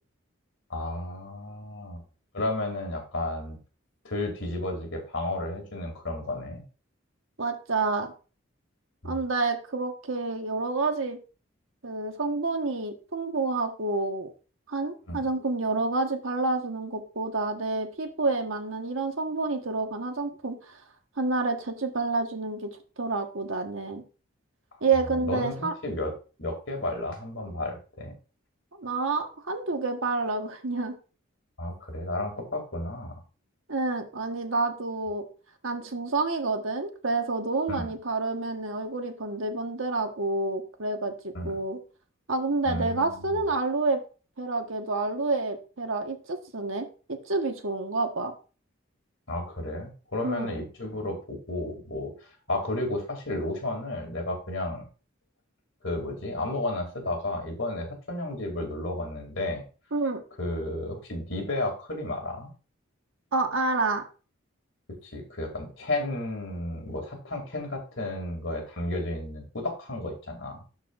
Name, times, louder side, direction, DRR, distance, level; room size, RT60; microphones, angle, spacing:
voice 1, 0.7-2.0 2.3-3.6 4.0-6.6 9.0-9.2 15.1-15.2 24.9-26.1 26.4-28.1 31.6-33.2 37.7-37.9 41.3-41.5 42.6-43.5 49.3-52.1 52.5-54.9 55.8-59.6 60.4-62.5 65.0-70.6, left 1 dB, 65° left, 3 dB, 2.5 m, -32 dB
voice 2, 7.4-8.1 9.0-11.2 11.8-14.3 14.7-20.5 21.2-24.0 24.8-25.7 28.8-30.9 33.7-35.2 35.6-41.1 41.4-41.8 42.3-44.0 44.4-48.3 50.2-50.5 59.9-60.2 63.3-64.0, right 3 dB, 75° right, 5 dB, 1.3 m, -28 dB
12.0 x 4.7 x 2.5 m, 0.35 s
head